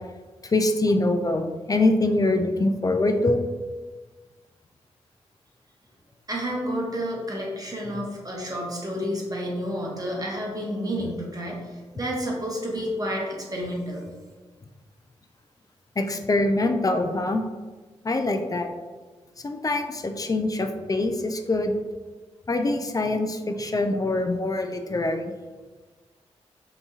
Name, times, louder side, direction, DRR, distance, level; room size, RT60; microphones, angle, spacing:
voice 1, 0.4-3.4 16.0-17.4 18.0-18.7 19.4-21.7 22.5-25.3, left 2 dB, 30° left, 6 dB, 0.3 m, -24 dB
voice 2, 6.3-14.0, equal, 30° right, -2 dB, 0.9 m, -30 dB
2.9 x 2.6 x 2.3 m, 1.3 s
supercardioid pair, 40°, 12 cm